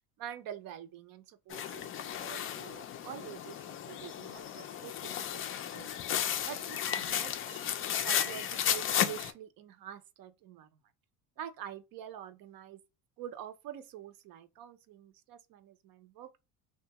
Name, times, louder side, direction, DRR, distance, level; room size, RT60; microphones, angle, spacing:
voice 1, 0.2-5.5 5.7-5.9 6.5-7.7 8.0-10.7 11.4-12.8 13.2-16.4, right 10 dB, 50° right, 0.6 m, -46 dB
sound 1, 1.5-9.3, left 10 dB, 30° left, 0.4 m, -34 dB
2.4 x 2.3 x 2.9 m
supercardioid pair, 105°, 44 cm